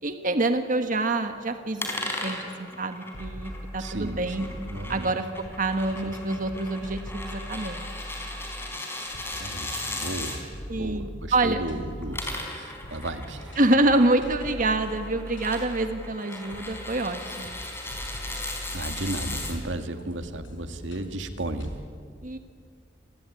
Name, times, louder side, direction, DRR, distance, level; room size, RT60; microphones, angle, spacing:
voice 1, 0.0-4.5 4.9-5.2 5.6-7.9 10.7-11.6 13.6-17.6 22.2-22.4, right 2 dB, 45° right, 7 dB, 1.4 m, -26 dB
sound 1, 1.8-10.4 11.9-19.5, left 2 dB, 15° left, 4.6 m, -37 dB
sound 2, 3.1-21.8, equal, 85° left, 5.3 m, -41 dB
voice 2, 3.8-5.1 9.4-10.5 10.8-13.6 18.7-21.8, right 1 dB, 80° right, 7 dB, 2.1 m, -34 dB
29.0 x 21.0 x 9.9 m, 2.2 s
head